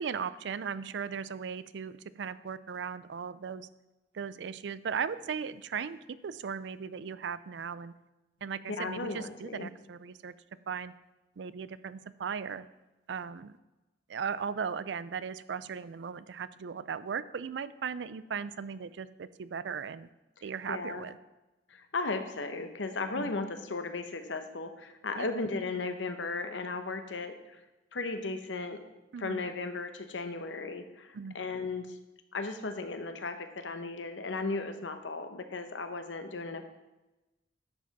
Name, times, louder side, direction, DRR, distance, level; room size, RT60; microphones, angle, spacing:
voice 1, 0.0-3.7 4.1-7.9 8.4-10.3 10.7-10.9 11.4-12.7 13.1-13.5 14.1-20.1 20.4-21.2 23.2-23.3 25.2-25.3 29.1-29.4 31.1-31.4, right 6 dB, 65° right, 16 dB, 0.4 m, -37 dB
voice 2, 8.8-9.7 20.7-21.0 21.7-27.6 27.9-28.8 29.2-32.0 32.3-36.6, left 3 dB, 80° left, 7 dB, 1.0 m, -36 dB
10.5 x 7.3 x 4.1 m, 1.0 s
head